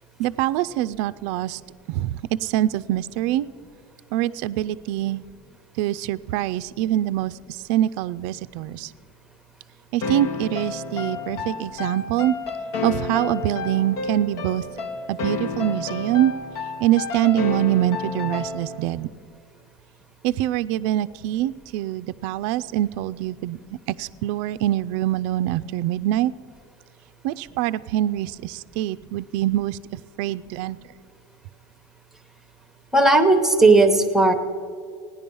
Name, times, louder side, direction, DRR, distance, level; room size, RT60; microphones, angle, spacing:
voice 1, 0.2-1.6 1.9-3.5 4.1-5.2 5.8-8.9 9.9-12.3 12.8-14.7 15.1-16.3 16.8-19.1 20.2-23.6 23.9-26.3 27.2-30.8, right 13 dB, 60° right, 13 dB, 0.4 m, -24 dB
sound 1, 10.0-18.9, left 4 dB, 70° left, 1.3 m, -31 dB
voice 2, 32.9-34.3, right 2 dB, ahead, 7 dB, 0.9 m, -16 dB
17.0 x 10.5 x 5.4 m, 2.3 s
supercardioid pair, 150°, 19 cm